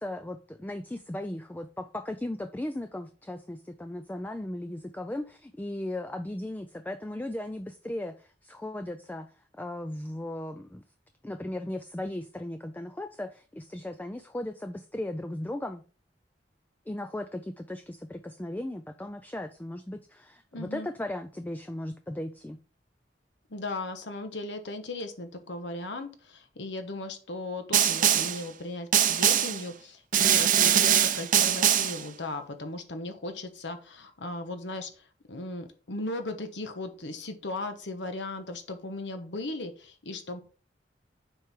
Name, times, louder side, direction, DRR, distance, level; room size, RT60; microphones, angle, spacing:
voice 1, 0.0-9.3 9.5-10.8 11.2-15.8 16.9-22.6, left 1 dB, 10° left, 0.4 m, -37 dB
voice 2, 20.5-20.9 23.5-40.4, left 2 dB, 80° left, 1.2 m, -37 dB
Snare drum, 27.7-28.4 28.9-29.6 30.1-32.0, right 10 dB, 50° right, 0.6 m, -22 dB
7.4 x 4.6 x 3.6 m
head